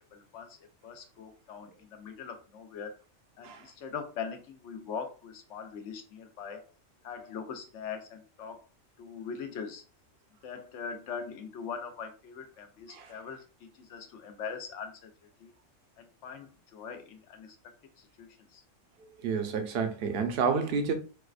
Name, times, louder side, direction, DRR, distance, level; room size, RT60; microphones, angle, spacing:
voice 1, 0.1-0.6 0.8-2.9 3.4-6.7 7.0-8.6 9.0-9.8 10.4-15.1 15.4-15.5 16.0-17.6 18.2-18.6, left 6 dB, 75° left, 0.9 m, -41 dB
voice 2, 19.0-20.9, right 5 dB, 60° right, 0.8 m, -30 dB
4.7 x 2.1 x 2.4 m
omnidirectional pair, 1.3 m